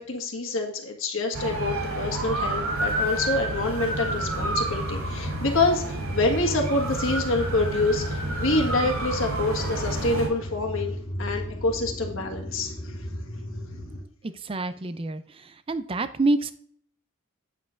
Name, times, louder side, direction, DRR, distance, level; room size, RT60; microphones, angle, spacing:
voice 1, 0.1-12.9, left 2 dB, 60° left, 1 dB, 1.5 m, -27 dB
sound 1, 1.3-10.3, right 2 dB, 70° right, 2.9 m, -30 dB
sound 2, 3.9-14.0, equal, 85° left, 2.0 m, -35 dB
voice 2, 14.2-16.5, right 2 dB, 25° right, 12 dB, 0.4 m, -27 dB
8.5 x 7.3 x 2.5 m, 0.64 s
head